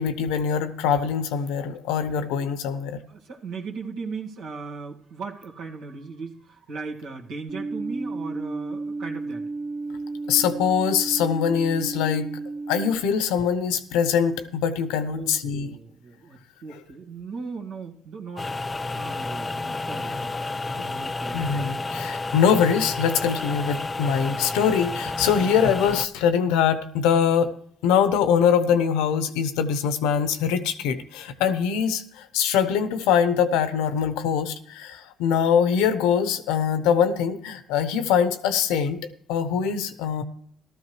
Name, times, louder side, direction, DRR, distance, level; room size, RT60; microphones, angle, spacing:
voice 1, 0.0-3.0 10.3-12.3 12.7-15.7 21.3-27.5 27.8-32.0 32.3-39.0 39.3-40.2, left 7 dB, 90° left, 11 dB, 0.9 m, -23 dB
voice 2, 3.1-9.4 15.0-18.5 18.9-20.3 20.8-21.5 21.9-22.0 25.3-25.7, right 4 dB, 80° right, -1 dB, 2.0 m, -37 dB
sound 1, 7.5-12.9, right 3 dB, 25° right, 2.1 m, -33 dB
sound 2, 18.4-26.1, left 3 dB, 25° left, 0.4 m, -31 dB
15.5 x 13.0 x 3.2 m, 0.65 s
supercardioid pair, 70°, 0 cm